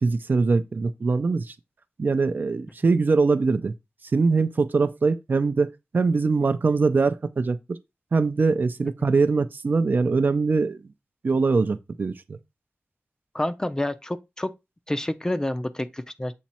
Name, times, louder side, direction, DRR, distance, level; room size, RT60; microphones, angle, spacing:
voice 1, 0.0-1.5 2.0-3.7 4.1-7.8 8.1-10.8 11.2-12.4, right 4 dB, 50° right, 0.5 m, -22 dB
voice 2, 13.3-14.5 14.9-16.3, left 1 dB, 15° left, 0.5 m, -28 dB
7.2 x 3.0 x 4.3 m
wide cardioid pair, 100°, 4 cm